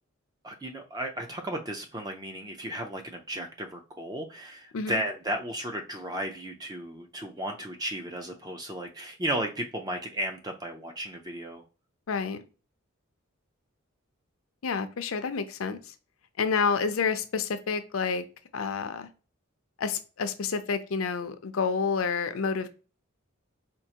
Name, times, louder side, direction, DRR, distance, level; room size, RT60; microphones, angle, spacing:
voice 1, 0.4-11.6, right 1 dB, 20° right, 4 dB, 0.4 m, -34 dB
voice 2, 12.1-12.4 14.6-15.8 16.4-18.2 18.5-19.1 19.8-22.7, left 5 dB, 70° left, 9 dB, 0.5 m, -29 dB
4.5 x 2.4 x 2.8 m, 0.35 s
head